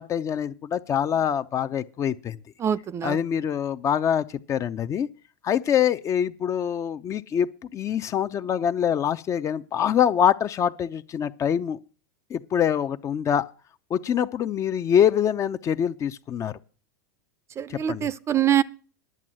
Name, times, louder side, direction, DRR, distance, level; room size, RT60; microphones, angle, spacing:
voice 1, 0.0-2.4 3.0-5.1 5.4-11.8 12.3-13.5 13.9-16.5 17.7-18.1, left 9 dB, 30° left, 0.6 m, -24 dB
voice 2, 2.6-3.2 17.6-18.6, right 10 dB, 30° right, 0.6 m, -24 dB
11.0 x 7.6 x 7.6 m
hypercardioid pair, 105°, 10 cm